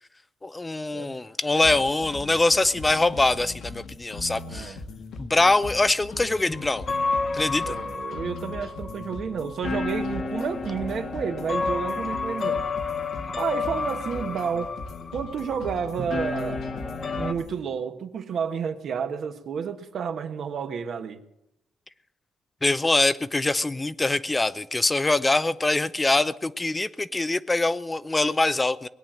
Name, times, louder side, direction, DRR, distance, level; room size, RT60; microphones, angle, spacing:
voice 1, 0.4-4.8 5.2-6.8 7.3-7.8 22.6-28.9, left 2 dB, 20° left, 0.5 m, -23 dB
sound 1, 1.6-17.6, left 3 dB, 80° left, 1.6 m, -40 dB
voice 2, 4.4-4.8 7.6-12.6 13.2-14.7 15.1-16.6 17.2-21.2, right 6 dB, 60° right, 1.3 m, -30 dB
sound 2, 6.5-17.3, left 4 dB, 45° left, 1.0 m, -31 dB
Drum, 16.0-18.7, right 7 dB, 75° right, 1.0 m, -44 dB
20.0 x 8.8 x 7.7 m
cardioid pair, 90°, 0 cm